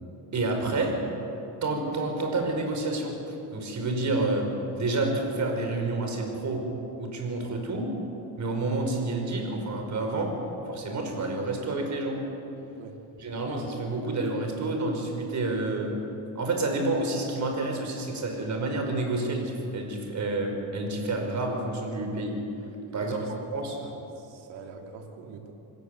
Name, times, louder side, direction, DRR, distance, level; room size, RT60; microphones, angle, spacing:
voice 1, 0.3-0.9 1.6-4.4 4.8-6.6 7.0-7.9 8.4-10.3 10.7-12.2 13.2-15.9 16.3-22.3 22.9-23.2 23.5-23.8, right 2 dB, 40° right, 3 dB, 5.3 m, -29 dB
voice 2, 22.9-23.4 23.7-25.5, right 5 dB, 80° right, 3 dB, 2.9 m, -43 dB
26.0 x 16.5 x 8.1 m, 2.9 s
cardioid pair, 115°, 42 cm